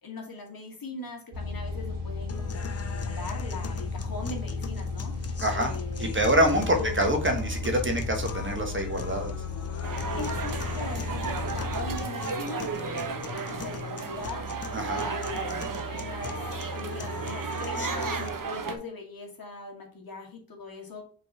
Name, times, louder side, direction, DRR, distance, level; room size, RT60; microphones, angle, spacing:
voice 1, 0.0-5.1 5.5-6.2 6.7-6.9 10.2-14.5 14.9-16.4 16.7-21.0, left 3 dB, 55° left, 0 dB, 2.2 m, -40 dB
sound 1, 1.3-12.0, left 3 dB, 80° right, 3.2 m, -34 dB
sound 2, 2.3-18.3, left 3 dB, 35° left, 0.6 m, -39 dB
voice 2, 5.4-5.7 6.0-9.3 14.7-15.0, equal, 30° right, 3 dB, 1.3 m, -26 dB
sound 3, 9.8-18.8, right 5 dB, 50° right, 1.0 m, -34 dB
5.6 x 3.9 x 4.8 m, 0.43 s
wide cardioid pair, 120°, 42 cm